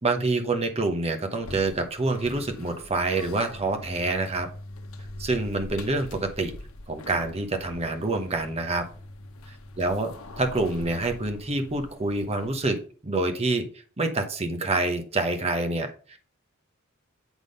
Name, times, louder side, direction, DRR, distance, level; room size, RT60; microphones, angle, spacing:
voice 1, 0.0-4.5 5.2-6.5 6.9-8.8 9.8-13.7 14.0-16.2, right 2 dB, 30° right, 5 dB, 0.9 m, -27 dB
sound 1, 1.4-12.8, left 1 dB, 80° left, 0.9 m, -43 dB
8.2 x 3.7 x 5.2 m, 0.41 s
head